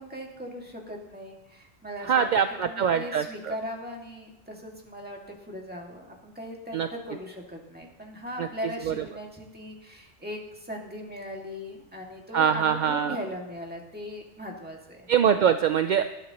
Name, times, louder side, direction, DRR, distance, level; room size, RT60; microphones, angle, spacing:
voice 1, 0.0-2.3 2.6-15.1, equal, 10° right, -1 dB, 2.0 m, -39 dB
voice 2, 2.0-3.5 6.7-6.9 8.4-8.5 8.9-9.0 12.3-13.2 15.1-16.0, right 8 dB, 55° right, 9 dB, 0.5 m, -23 dB
19.5 x 11.5 x 3.0 m, 0.94 s
omnidirectional pair, 1.2 m